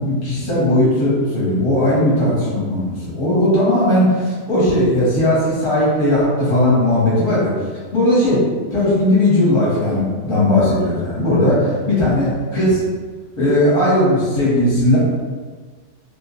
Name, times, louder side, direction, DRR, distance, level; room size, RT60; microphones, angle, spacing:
voice 1, 0.0-7.5 7.9-8.4 8.7-12.8 13.4-15.0, left 1 dB, 25° left, -8 dB, 0.8 m, -17 dB
2.3 x 2.2 x 2.9 m, 1.5 s
omnidirectional pair, 1.5 m